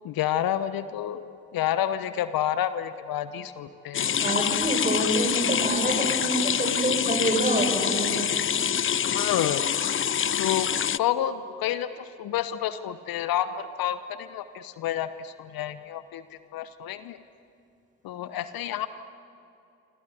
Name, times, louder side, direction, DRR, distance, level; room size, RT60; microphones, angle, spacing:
voice 1, 0.0-1.2 1.5-4.1 4.4-4.5 5.4-5.6 9.0-9.7 10.4-10.7 11.0-17.2 18.0-18.9, left 11 dB, 65° left, 13 dB, 1.0 m, -29 dB
sound 1, 3.9-11.0, left 9 dB, 30° left, 0.6 m, -26 dB
voice 2, 4.2-8.3, right 1 dB, 20° right, 3 dB, 7.6 m, -27 dB
27.0 x 27.0 x 8.1 m, 2.7 s
hypercardioid pair, 40°, 39 cm